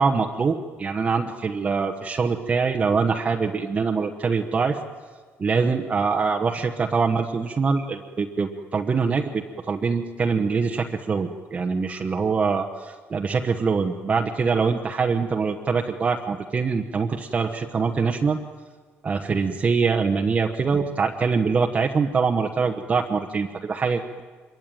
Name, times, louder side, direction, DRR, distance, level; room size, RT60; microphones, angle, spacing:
voice 1, 0.0-4.8 5.4-18.4 19.0-24.2, right 5 dB, 30° right, 3 dB, 1.1 m, -24 dB
26.0 x 23.0 x 9.3 m, 1.5 s
cardioid pair, 155°, 5 cm